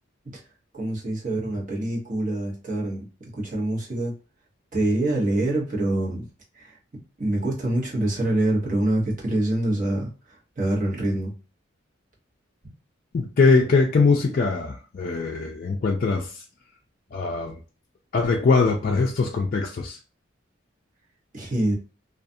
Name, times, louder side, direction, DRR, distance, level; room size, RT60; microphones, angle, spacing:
voice 1, 0.7-3.1 3.3-4.1 4.7-6.2 6.6-6.7 7.2-10.1 10.6-11.3 21.3-21.7, right 1 dB, 40° right, 1.0 m, -25 dB
voice 2, 13.1-16.4 17.1-17.6 18.1-20.0, left 4 dB, 45° left, 0.3 m, -22 dB
2.4 x 2.3 x 2.6 m
head